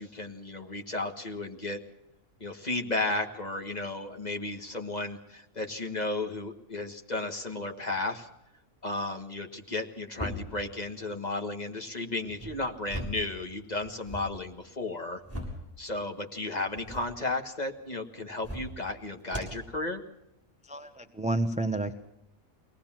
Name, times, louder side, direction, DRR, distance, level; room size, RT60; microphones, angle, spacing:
voice 1, 0.0-1.8 2.4-8.3 8.8-15.2 15.8-20.0, left 2 dB, 30° left, 5 dB, 1.8 m, -34 dB
sound 1, 10.1-10.7 12.2-13.3 13.7-14.3 14.9-15.7 16.6-17.1 18.3-18.8 19.3-19.6, equal, 10° left, 6.2 m, -39 dB
voice 2, 20.6-21.9, right 2 dB, 5° right, 9 dB, 0.7 m, -30 dB
23.0 x 18.5 x 7.5 m, 0.85 s
omnidirectional pair, 1.5 m